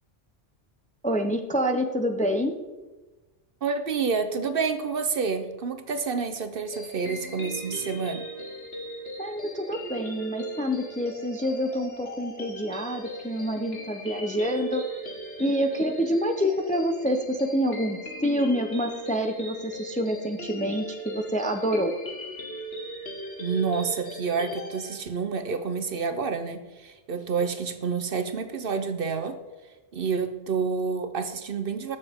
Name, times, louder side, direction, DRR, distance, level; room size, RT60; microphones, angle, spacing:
voice 1, 1.0-2.6 9.2-14.8 15.4-21.9, equal, 10° left, 5 dB, 0.6 m, -27 dB
voice 2, 3.6-8.2 23.4-29.4 29.9-32.0, right 5 dB, 55° right, 8 dB, 0.9 m, -29 dB
sound 1, 6.7-25.0, right 1 dB, 65° left, 1.9 m, -39 dB
20.0 x 6.9 x 3.6 m, 1.2 s
omnidirectional pair, 1.2 m